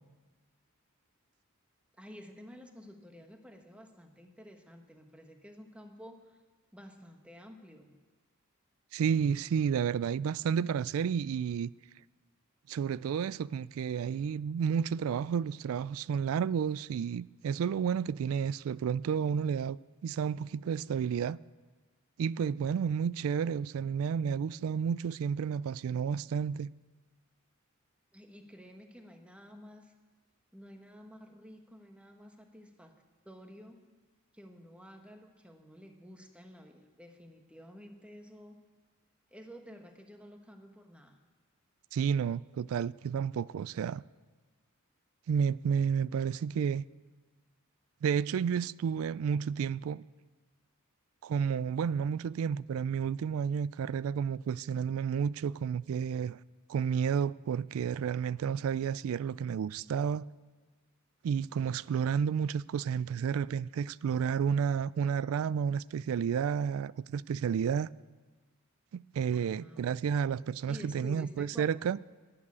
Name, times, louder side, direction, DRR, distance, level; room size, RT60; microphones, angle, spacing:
voice 1, 2.0-6.4 6.7-7.9 28.1-29.9 30.5-32.9 33.2-33.8 34.3-38.6 39.3-41.2 69.3-69.9 70.7-71.7, equal, 5° right, 1.2 m, -51 dB
voice 2, 8.9-11.7 12.7-21.4 22.2-26.7 41.9-44.0 45.3-46.8 48.0-50.0 51.2-56.4 56.7-60.3 61.2-67.9 68.9-72.0, right 7 dB, 70° right, 0.3 m, -31 dB
11.0 x 9.8 x 8.4 m
head